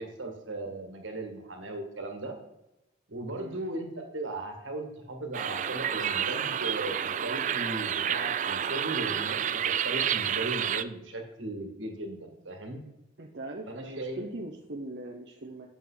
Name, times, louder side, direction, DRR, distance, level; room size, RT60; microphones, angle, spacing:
voice 1, 0.0-2.4 3.1-12.8 13.7-14.2, right 2 dB, 85° right, 3 dB, 1.7 m, -37 dB
sound 1, 5.3-10.8, right 9 dB, 40° right, 0.3 m, -30 dB
voice 2, 13.2-15.7, right 2 dB, 60° right, 1 dB, 0.8 m, -40 dB
8.6 x 6.9 x 3.8 m, 0.93 s
head